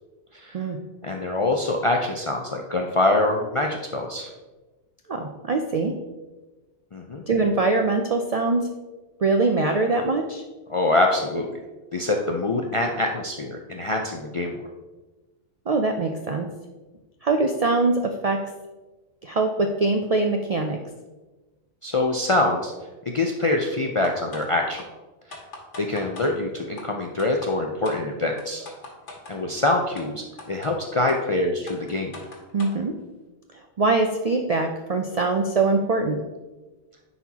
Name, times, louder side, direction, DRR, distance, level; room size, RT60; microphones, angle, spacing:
voice 1, 1.0-4.3 6.9-7.2 10.7-11.5 11.9-14.7 21.8-22.7 23.1-24.8 25.8-28.7 29.3-32.2, left 2 dB, 50° left, 1 dB, 0.3 m, -24 dB
voice 2, 5.1-5.9 7.3-8.7 9.2-10.4 15.7-16.5 17.2-18.4 19.2-20.8 32.5-32.9 33.8-36.2, right 3 dB, 60° right, 4 dB, 0.3 m, -23 dB
sound 1, 24.0-24.5 24.8-24.9 25.3-26.3 26.8-26.9 27.2-27.5 27.8-28.0 28.4-29.4 30.0-30.1 30.4-30.7 31.1-31.2 31.7-32.8, left 2 dB, 80° left, 1.5 m, -40 dB
9.8 x 4.3 x 2.8 m, 1.2 s
omnidirectional pair, 1.2 m